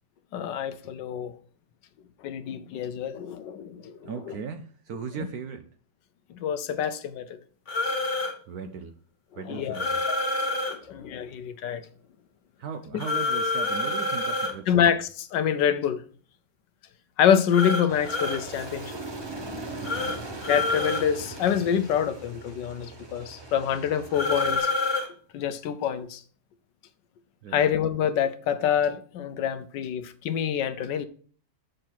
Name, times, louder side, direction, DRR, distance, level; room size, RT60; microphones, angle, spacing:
voice 1, 0.3-1.3 2.2-4.4 6.4-7.4 9.5-9.8 10.7-11.8 14.7-16.0 17.2-18.9 20.5-24.7 25.3-26.2 27.5-31.1, left 8 dB, 70° left, 1.2 m, -26 dB
voice 2, 4.0-5.6 8.5-8.9 9.4-10.1 12.6-14.8 19.8-20.2 27.4-27.7, right 6 dB, 70° right, 0.9 m, -38 dB
sound 1, 7.7-8.3 9.7-10.8 13.0-14.5 17.5-18.4 19.8-20.2 20.4-21.0 24.1-25.1, left 2 dB, 40° left, 1.5 m, -27 dB
Aircraft, 17.9-24.6, right 2 dB, 40° right, 0.4 m, -40 dB
7.7 x 6.5 x 4.4 m
omnidirectional pair, 2.1 m